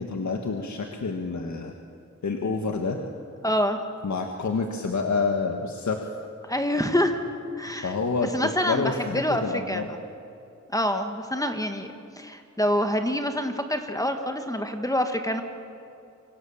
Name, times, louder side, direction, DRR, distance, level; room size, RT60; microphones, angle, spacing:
voice 1, 0.0-1.7 2.2-3.0 4.0-6.0 7.8-9.9, left 4 dB, 70° left, 3 dB, 1.7 m, -28 dB
voice 2, 3.4-3.8 6.5-7.2 7.6-7.9 8.3-9.4 9.7-10.0 10.7-11.9 12.2-15.4, equal, 10° left, 5 dB, 1.6 m, -26 dB
25.5 x 25.5 x 7.3 m, 2.5 s
wide cardioid pair, 115°, 29 cm